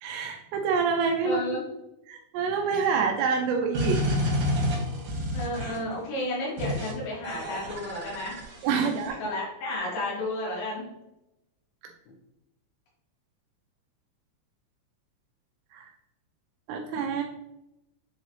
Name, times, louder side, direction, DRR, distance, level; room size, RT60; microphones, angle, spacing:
voice 1, 0.0-1.6 2.1-4.0 8.6-9.2 15.7-15.9 16.7-17.2, right 5 dB, 85° right, 3 dB, 2.4 m, -27 dB
voice 2, 1.3-1.6 5.3-8.4 8.7-10.8, left 1 dB, 75° left, -5 dB, 4.2 m, -32 dB
sound 1, 3.7-5.9 6.6-6.9 7.2-9.1, left 1 dB, 60° right, 1.7 m, -29 dB
8.3 x 3.8 x 3.1 m, 0.91 s
omnidirectional pair, 5.4 m